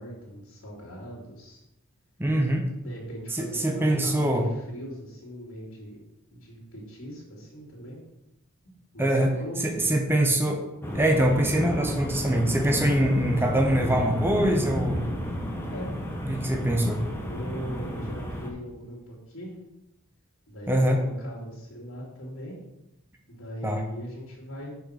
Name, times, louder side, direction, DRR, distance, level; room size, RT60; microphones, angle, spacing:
voice 1, 0.0-1.6 2.8-6.0 6.3-8.0 8.9-10.0 15.6-15.9 17.1-19.6 20.5-22.6 23.3-24.7, equal, 75° left, -5 dB, 2.8 m, -40 dB
voice 2, 2.2-2.7 3.3-4.5 9.0-9.3 9.6-10.6 10.9-15.0 16.3-17.0 20.7-21.0 23.6-23.8, right 1 dB, 10° right, 2 dB, 1.0 m, -23 dB
sound 1, 10.8-18.5, equal, 10° left, 1.1 m, -32 dB
6.5 x 5.6 x 6.6 m, 0.86 s
head